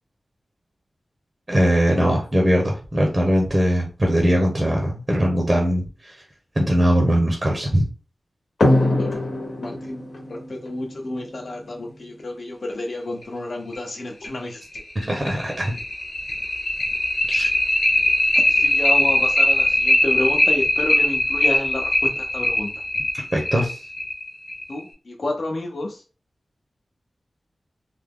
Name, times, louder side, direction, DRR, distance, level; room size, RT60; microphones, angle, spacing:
voice 1, 1.5-6.1 6.6-7.8 15.0-15.7 17.3-17.5 23.3-23.8, equal, 25° right, 0 dB, 0.8 m, -20 dB
sound 1, 8.6-11.8 13.2-13.3 13.7-13.8 14.2-14.3 14.7-24.8, left 1 dB, 75° left, 1.1 m, -21 dB
voice 2, 8.9-9.2 9.6-14.6 18.5-22.7 24.7-26.0, left 1 dB, 60° left, 1 dB, 1.0 m, -30 dB
3.4 x 2.1 x 3.6 m, 0.34 s
wide cardioid pair, 110°, 0 cm